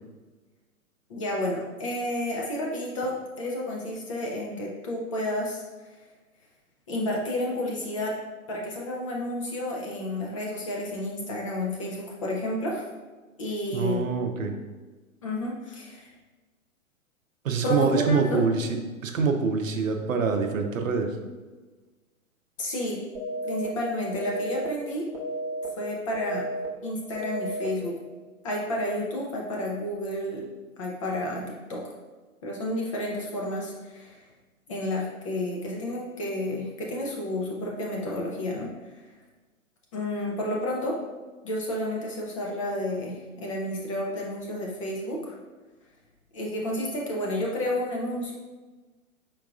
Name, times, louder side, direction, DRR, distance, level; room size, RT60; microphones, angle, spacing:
voice 1, 1.1-5.6 6.9-8.1 8.5-12.9 13.4-14.1 15.2-16.1 17.6-18.4 22.6-23.0 23.4-25.1 25.8-26.4 26.8-28.0 28.4-30.5 30.8-31.4 31.7-31.8 32.4-34.2 34.7-38.7 39.9-41.0 41.4-45.4 46.3-48.3, left 1 dB, 25° left, -2 dB, 0.4 m, -31 dB
voice 2, 13.7-14.5 17.4-18.8 19.0-21.1, right 5 dB, 70° right, 4 dB, 0.7 m, -25 dB
sound 1, 23.1-23.6 24.1-24.6 25.1-25.6 26.1-26.6 27.1-27.6, equal, 20° right, 0.7 m, -32 dB
4.6 x 3.6 x 2.4 m, 1.3 s
figure-of-eight pair, 115°, 42 cm